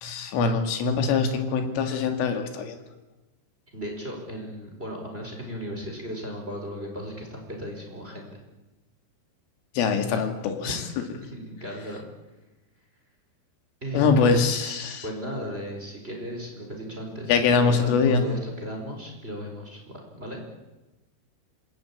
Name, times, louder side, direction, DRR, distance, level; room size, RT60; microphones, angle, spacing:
voice 1, 0.0-2.8 9.7-10.8 13.9-15.0 17.3-18.2, left 5 dB, 80° left, 5 dB, 4.9 m, -23 dB
voice 2, 3.7-8.4 10.6-10.7 11.2-12.0 13.8-20.4, equal, 10° right, 2 dB, 4.7 m, -36 dB
26.5 x 22.5 x 8.7 m, 1.1 s
omnidirectional pair, 5.8 m